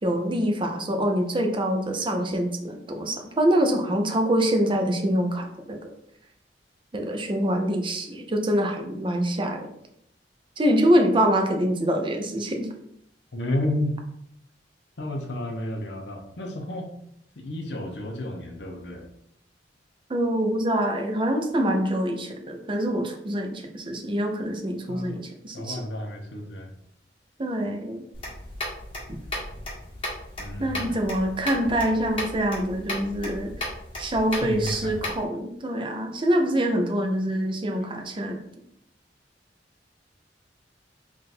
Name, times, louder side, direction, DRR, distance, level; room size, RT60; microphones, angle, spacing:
voice 1, 0.0-5.9 6.9-9.7 10.6-12.7 20.1-25.8 27.4-28.0 29.1-29.2 30.6-33.5 34.0-38.4, equal, 30° right, 4 dB, 0.6 m, -25 dB
voice 2, 13.3-14.0 15.0-16.9 17.4-19.1 24.9-25.2 25.5-26.7 30.4-31.0 34.3-35.1, left 1 dB, 70° left, 2 dB, 0.8 m, -31 dB
sound 1, 28.1-35.2, left 1 dB, 30° left, 1.5 m, -35 dB
3.7 x 2.5 x 4.2 m, 0.74 s
head